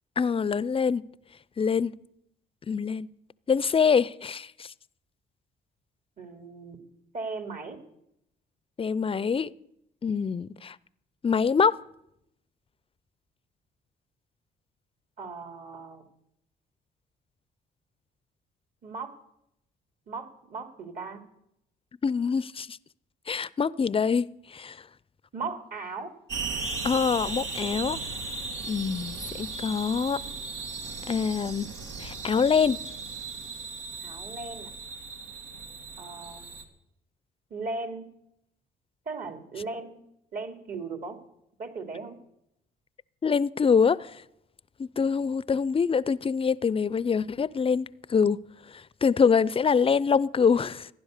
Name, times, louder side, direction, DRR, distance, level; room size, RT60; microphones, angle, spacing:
voice 1, 0.2-1.0 1.6-1.9 2.7-3.1 3.5-4.7 8.8-9.5 10.0-10.8 11.2-11.7 22.0-22.8 23.3-24.8 26.8-28.0 28.7-30.2 31.1-31.7 32.0-32.8 43.2-44.2 44.8-48.4 49.0-50.9, left 6 dB, 30° left, 0.5 m, -25 dB
voice 2, 6.2-6.8 7.1-7.8 15.2-16.0 18.8-19.1 20.1-21.2 25.3-26.1 34.0-34.7 36.0-36.4 37.5-38.1 39.1-40.0 40.3-41.2 41.6-42.2, right 4 dB, 50° right, 2.8 m, -37 dB
sound 1, 26.3-36.6, right 4 dB, 80° right, 2.2 m, -37 dB
15.0 x 10.5 x 6.6 m
supercardioid pair, 65°, 19 cm